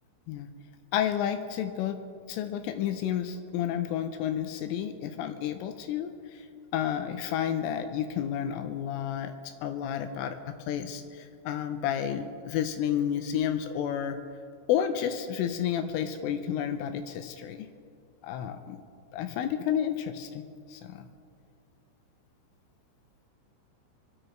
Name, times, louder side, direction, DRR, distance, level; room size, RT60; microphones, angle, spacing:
voice 1, 0.9-2.0 2.3-6.5 6.7-9.3 9.6-14.2 14.7-17.7 18.2-18.8 19.1-20.4 20.7-21.1, left 9 dB, 85° left, 7 dB, 3.3 m, -31 dB
27.0 x 9.3 x 4.5 m, 2.3 s
omnidirectional pair, 5.6 m